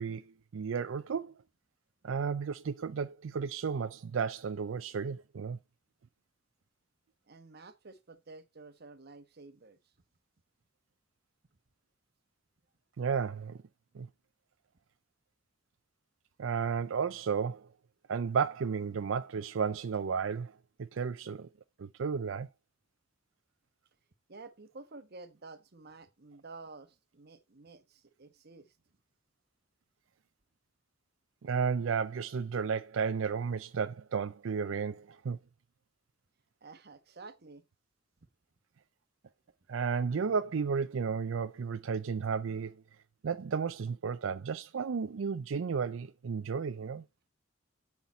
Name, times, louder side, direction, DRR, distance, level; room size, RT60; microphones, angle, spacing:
voice 1, 0.0-1.3 2.0-5.6 13.0-13.6 13.9-14.1 16.4-17.7 18.1-21.5 21.8-22.5 31.4-35.4 39.7-42.8 43.2-47.0, right 6 dB, 85° right, 0.4 m, -33 dB
voice 2, 7.3-9.8 24.3-28.7 36.6-37.6, right 3 dB, 55° right, 1.0 m, -51 dB
8.1 x 5.8 x 4.2 m
head